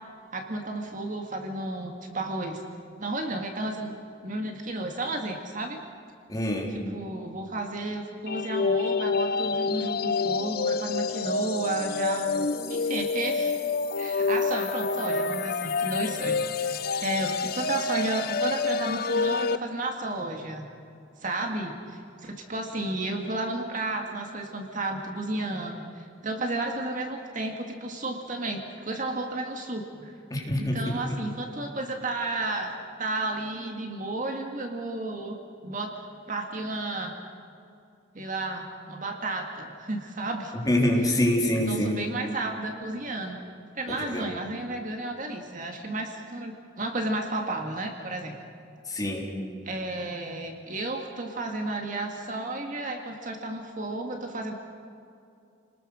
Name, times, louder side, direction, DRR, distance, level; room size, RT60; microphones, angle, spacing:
voice 1, 0.3-2.6 3.0-3.9 4.2-5.8 6.7-13.5 14.0-20.7 21.2-30.2 30.6-32.7 33.0-35.4 35.6-35.9 36.3-37.1 38.1-40.5 41.7-43.4 43.7-48.4 49.6-54.5, right 2 dB, 40° right, 3 dB, 2.1 m, -32 dB
voice 2, 6.3-6.7 30.3-30.8 40.6-42.0 43.9-44.2 48.9-49.2, left 1 dB, 20° left, -1 dB, 3.7 m, -25 dB
sound 1, 8.3-19.6, left 4 dB, 50° left, 0.6 m, -28 dB
29.5 x 20.0 x 6.5 m, 2.5 s
head